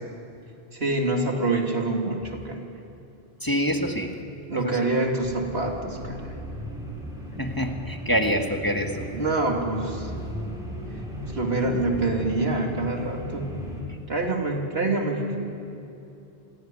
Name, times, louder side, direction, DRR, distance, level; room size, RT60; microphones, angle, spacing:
voice 1, 0.7-2.7 4.5-6.4 9.1-10.1 11.3-13.8 14.1-15.6, right 2 dB, 75° right, 1 dB, 2.9 m, -26 dB
voice 2, 3.4-4.1 4.6-4.8 7.4-9.1, equal, 20° left, 3 dB, 1.6 m, -26 dB
sound 1, 5.2-13.8, equal, 5° right, 6.2 m, -36 dB
26.0 x 17.0 x 9.9 m, 2.7 s
omnidirectional pair, 1.0 m